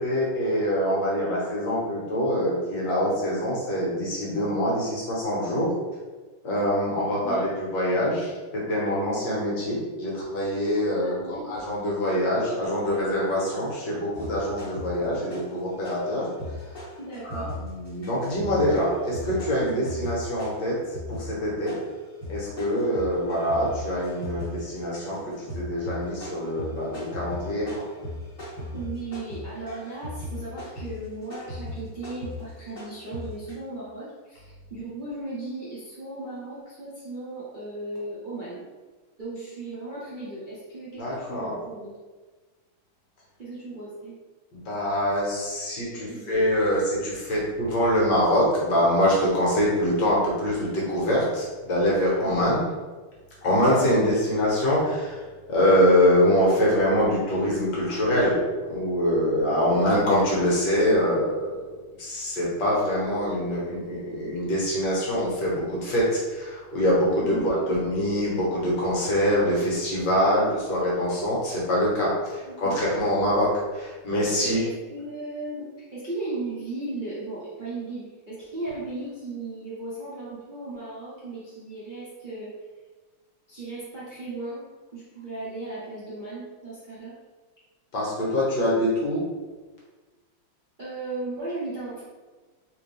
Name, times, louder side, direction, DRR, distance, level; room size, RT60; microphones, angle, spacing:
voice 1, 0.0-5.7 6.4-11.1 11.5-16.3 16.6-16.9 17.2-21.8 22.3-27.8 41.0-41.5 44.5-52.6 53.4-55.2 55.5-58.4 58.7-61.5 62.0-74.6 87.9-89.2, equal, 60° left, -5 dB, 1.7 m, -24 dB
voice 2, 11.0-11.5 17.0-17.5 28.7-38.6 39.2-42.0 43.4-44.1 45.9-46.4 59.6-59.8 67.2-67.7 72.5-72.8 74.4-82.5 83.5-84.6 84.9-87.1 90.8-92.0, right 2 dB, 40° right, -10 dB, 0.7 m, -36 dB
sound 1, 14.1-15.6 15.8-33.5, left 1 dB, 35° left, 1.8 m, -38 dB
3.6 x 3.5 x 3.3 m, 1.3 s
omnidirectional pair, 2.2 m